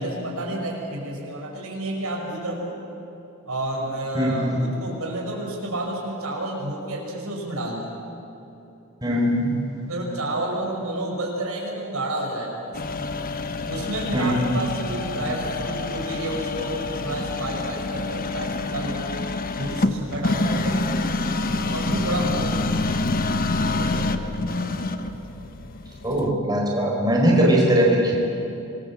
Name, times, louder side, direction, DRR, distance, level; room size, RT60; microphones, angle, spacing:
voice 1, 0.0-2.7 3.5-7.9 9.8-12.8 13.7-19.0 19.6-20.8 21.7-22.8 23.7-24.1, right 1 dB, 75° right, -1 dB, 6.0 m, -30 dB
voice 2, 4.1-4.5 9.0-9.5 14.1-14.3 26.0-28.2, right 1 dB, 20° right, -3 dB, 5.0 m, -20 dB
sound 1, 12.7-26.3, left 2 dB, 40° left, 1.1 m, -27 dB
27.0 x 21.5 x 7.5 m, 3.0 s
head